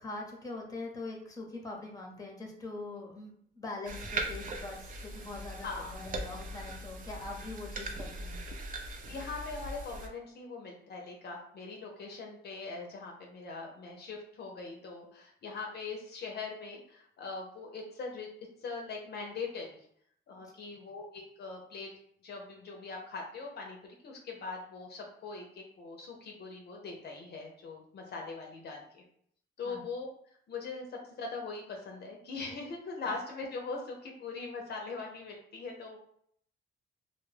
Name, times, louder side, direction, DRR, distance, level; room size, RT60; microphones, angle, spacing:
voice 1, 0.0-8.4 20.4-20.5 29.6-29.8 33.0-33.1, left 2 dB, 15° left, 1 dB, 0.7 m, -43 dB
sound 1, 3.9-10.1, right 2 dB, 45° right, 0.5 m, -40 dB
voice 2, 5.6-5.9 9.1-18.3 18.6-19.9 20.3-21.9 22.2-29.0 29.6-30.1 30.5-36.0, left 4 dB, 55° left, 1 dB, 0.6 m, -41 dB
2.2 x 2.1 x 3.2 m, 0.67 s
cardioid pair, 90°, 20 cm